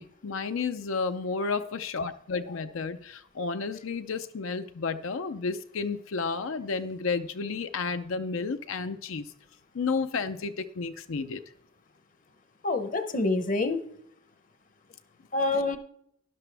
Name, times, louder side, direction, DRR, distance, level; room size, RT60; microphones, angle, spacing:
voice 1, 0.0-9.3 9.7-11.4, left 4 dB, 70° left, 9 dB, 0.5 m, -32 dB
voice 2, 12.6-13.8 15.3-15.8, left 3 dB, 40° left, 9 dB, 0.8 m, -26 dB
12.0 x 11.0 x 3.4 m, 0.71 s
head